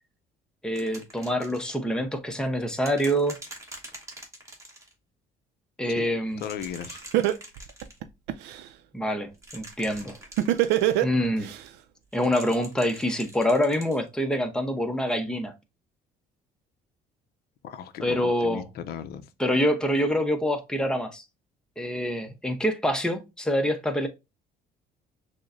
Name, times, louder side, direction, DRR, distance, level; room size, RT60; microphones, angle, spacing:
voice 1, 0.6-3.4 5.8-6.4 8.9-10.2 11.0-11.5 12.1-15.5 18.0-18.6 19.4-21.2 21.8-24.1, equal, 5° left, 0.7 m, -26 dB
sound 1, 0.7-1.7 2.8-4.9 6.3-8.0 9.3-11.0 12.1-14.0 15.1-15.2, right 1 dB, 15° right, 1.3 m, -45 dB
voice 2, 6.4-7.0 17.6-19.3, left 9 dB, 70° left, 0.5 m, -36 dB
Laughter, 6.6-6.7 7.1-8.6 10.4-11.6, right 13 dB, 90° right, 0.4 m, -22 dB
6.2 x 2.1 x 2.5 m
cardioid pair, 110°, 17 cm